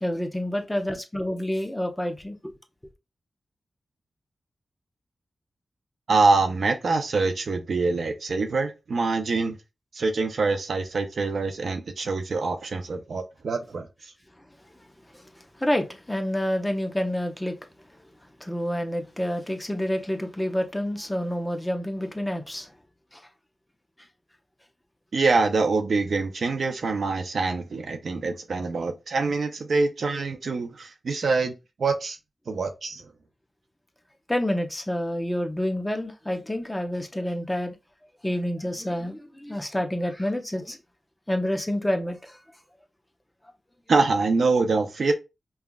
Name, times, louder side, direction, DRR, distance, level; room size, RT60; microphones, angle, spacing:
voice 1, 0.0-2.5 15.1-15.3 15.6-17.6 18.4-22.7 23.1-23.2 34.3-37.7 38.2-40.8 41.3-42.4, left 1 dB, 10° left, 0.7 m, -28 dB
voice 2, 6.1-9.6 9.9-13.9 25.1-31.5 31.8-32.2 32.5-33.1 43.9-45.1, right 3 dB, 70° right, 0.6 m, -25 dB
5.4 x 2.4 x 2.3 m
wide cardioid pair, 80°, 0 cm